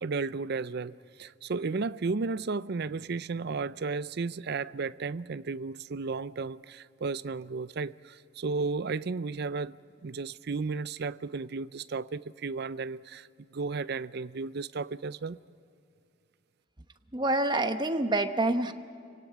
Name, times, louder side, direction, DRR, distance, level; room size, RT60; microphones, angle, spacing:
voice 1, 0.0-9.7 10.0-15.4, right 4 dB, 55° right, 0.5 m, -34 dB
voice 2, 17.1-18.7, right 2 dB, 20° right, 1.0 m, -27 dB
29.0 x 17.0 x 9.2 m
head